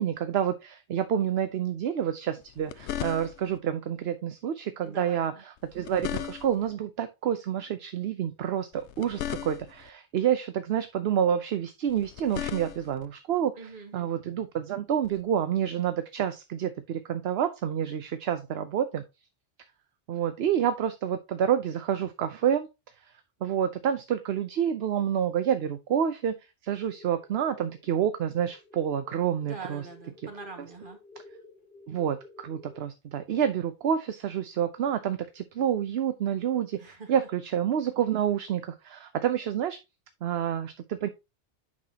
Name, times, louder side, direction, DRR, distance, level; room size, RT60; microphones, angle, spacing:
voice 1, 0.0-13.5 13.9-19.0 20.1-22.7 23.4-26.3 26.6-29.9 31.9-32.2 32.4-39.8 40.2-41.1, right 9 dB, 70° right, 10 dB, 0.9 m, -28 dB
sound 1, 2.4-3.6 5.6-6.7 8.7-9.9 11.9-13.1 15.0-15.2, left 11 dB, 85° left, 0.9 m, -37 dB
voice 2, 4.8-5.4 13.6-14.1 29.5-31.0 36.8-37.3, right 4 dB, 50° right, 4 dB, 1.9 m, -44 dB
sound 2, 26.7-32.8, left 3 dB, 60° left, 2.7 m, -53 dB
8.6 x 5.8 x 2.8 m, 0.24 s
omnidirectional pair, 1.1 m